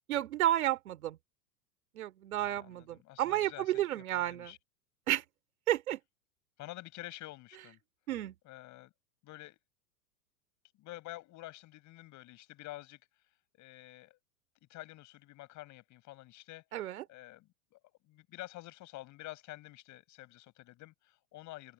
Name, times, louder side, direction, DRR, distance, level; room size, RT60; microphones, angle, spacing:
voice 1, 0.1-1.2 1.9-4.5 5.1-5.2 5.7-6.0 8.1-8.3 16.7-17.0, right 13 dB, 60° right, 3.0 m, -31 dB
voice 2, 2.4-4.6 6.6-7.8 8.4-8.9 9.2-9.6 10.8-13.0 13.6-14.2 14.7-21.7, left 18 dB, 35° left, 7.2 m, -49 dB
open air
figure-of-eight pair, 95°, 47 cm